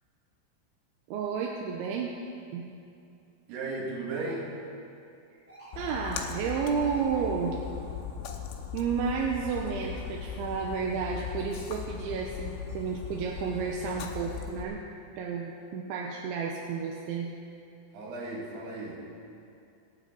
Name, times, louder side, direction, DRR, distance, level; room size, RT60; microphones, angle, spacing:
voice 1, 1.1-2.1 2.5-2.7 5.8-7.6 8.7-14.8 15.2-17.3, right 6 dB, 80° right, -1 dB, 3.1 m, -31 dB
voice 2, 3.5-4.6 17.9-19.0, right 2 dB, 65° right, -3 dB, 3.8 m, -35 dB
sound 1, 5.5-9.0 12.5-12.6, right 2 dB, 5° left, 1.0 m, -49 dB
Splash splatter, 5.7-14.6, left 8 dB, 90° left, 3.3 m, -39 dB
26.0 x 9.5 x 3.9 m, 2.6 s
omnidirectional pair, 5.5 m